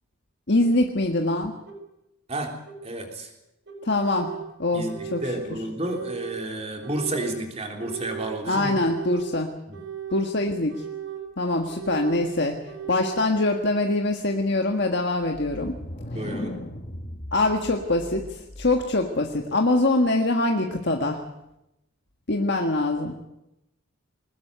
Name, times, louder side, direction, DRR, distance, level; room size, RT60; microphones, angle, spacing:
voice 1, 0.5-1.5 3.8-4.3 4.6-5.2 8.5-9.5 10.1-10.7 11.4-12.6 12.9-15.7 17.3-21.2 22.3-23.1, left 2 dB, 55° left, 2 dB, 1.7 m, -23 dB
sound 1, 1.7-1.8 2.7-2.8 3.7-4.4 4.8-5.4 5.8-6.4 6.8-7.4 7.8-8.3 8.7-9.3 9.7-10.3 10.7-11.2 11.7-12.2 12.6-13.2, right 10 dB, 55° right, 6.4 m, -36 dB
voice 2, 2.8-3.3 4.7-8.8 9.7-9.8 16.1-16.6, right 1 dB, 30° right, 2 dB, 3.7 m, -31 dB
sound 2, 15.2-19.0, left 1 dB, 35° left, 1.4 m, -37 dB
22.0 x 20.0 x 8.2 m, 0.89 s
head